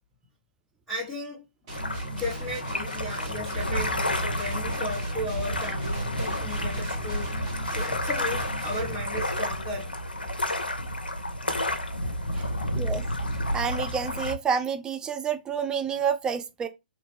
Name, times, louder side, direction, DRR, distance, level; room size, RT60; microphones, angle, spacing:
voice 1, 0.9-1.4 2.1-9.9 12.3-12.6, left 1 dB, 5° left, 1.5 m, -35 dB
sound 1, 1.7-14.3, left 1 dB, 80° left, 0.7 m, -30 dB
sound 2, 1.7-9.2, right 2 dB, 35° right, 1.5 m, -40 dB
voice 2, 12.7-13.0 13.5-16.7, right 6 dB, 15° right, 0.4 m, -28 dB
3.0 x 2.8 x 3.3 m
figure-of-eight pair, 120°, 5 cm